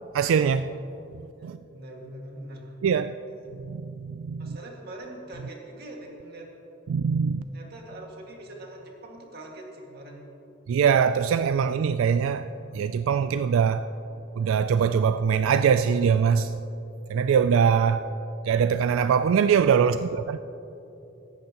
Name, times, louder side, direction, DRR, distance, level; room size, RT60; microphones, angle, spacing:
voice 1, 0.1-0.7 1.4-1.6 2.8-3.1 3.6-4.6 6.9-7.4 10.7-13.9 14.4-16.6 17.1-18.1 18.4-20.4, right 7 dB, 90° right, 0.3 m, -22 dB
voice 2, 1.4-2.8 4.4-6.5 7.5-10.3 19.8-19.9, right 1 dB, 50° right, 2.0 m, -43 dB
17.0 x 14.5 x 3.0 m
head